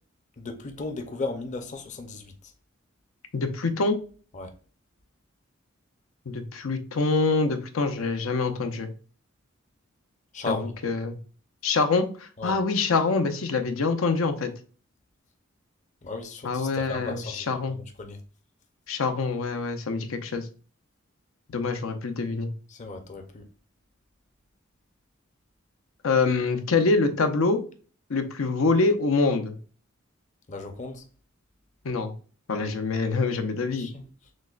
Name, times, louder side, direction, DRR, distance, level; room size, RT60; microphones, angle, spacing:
voice 1, 0.4-2.3 4.3-4.5 10.3-10.7 12.4-12.5 16.0-17.4 17.7-18.2 22.7-23.4 30.5-31.0 33.7-34.0, left 3 dB, 35° left, 0.6 m, -35 dB
voice 2, 3.3-4.0 6.3-8.9 10.5-11.2 11.6-14.5 16.4-17.8 18.9-20.5 21.5-22.5 26.0-27.6 28.1-29.6 31.8-32.1 32.5-33.9, left 3 dB, 90° left, 0.6 m, -25 dB
6.2 x 2.1 x 2.4 m
head